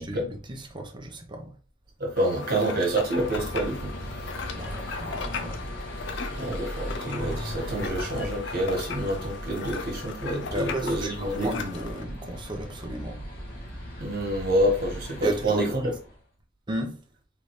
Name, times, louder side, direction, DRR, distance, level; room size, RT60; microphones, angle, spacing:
voice 1, 0.0-1.6 4.6-5.7 10.5-13.2 15.2-16.0 16.7-17.0, right 1 dB, 25° right, 0.9 m, -34 dB
voice 2, 2.0-3.9 6.3-11.5 14.0-15.9, right 1 dB, 50° right, 1.8 m, -27 dB
sound 1, 2.2-12.0, left 5 dB, 65° left, 0.6 m, -37 dB
sound 2, 2.8-16.2, equal, 50° left, 2.0 m, -38 dB
4.2 x 3.7 x 3.2 m
head